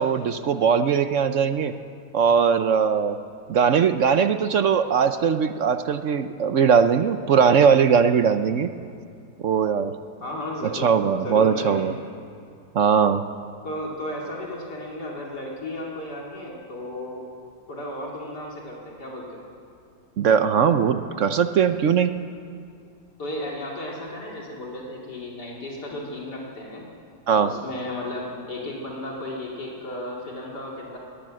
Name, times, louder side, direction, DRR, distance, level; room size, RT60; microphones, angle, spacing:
voice 1, 0.0-1.7 2.1-3.2 3.5-8.7 9.4-9.9 10.7-11.9 12.7-13.2 20.2-22.1 27.3-27.5, right 6 dB, 60° right, 9 dB, 0.8 m, -20 dB
voice 2, 10.2-11.9 13.6-17.3 17.7-19.4 23.2-26.8 27.4-31.0, left 1 dB, 65° left, -3 dB, 3.2 m, -34 dB
22.0 x 17.0 x 7.6 m, 2.4 s
omnidirectional pair, 1.9 m